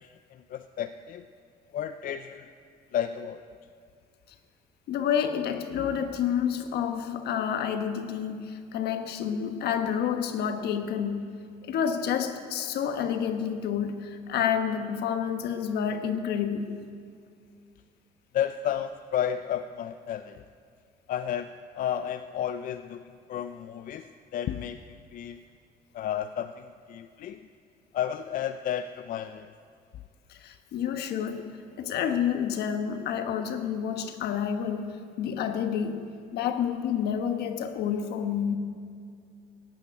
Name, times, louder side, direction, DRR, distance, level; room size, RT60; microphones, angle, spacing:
voice 1, 0.0-1.2 1.7-2.5 2.9-3.4 18.3-20.4 21.1-23.0 23.3-24.8 25.1-25.4 25.9-27.4 27.9-29.5, left 9 dB, 55° left, 0.5 m, -32 dB
voice 2, 4.9-11.4 11.7-16.8 30.3-38.6, left 8 dB, 75° left, 1.2 m, -29 dB
14.5 x 8.6 x 8.7 m
cardioid pair, 110°, 17 cm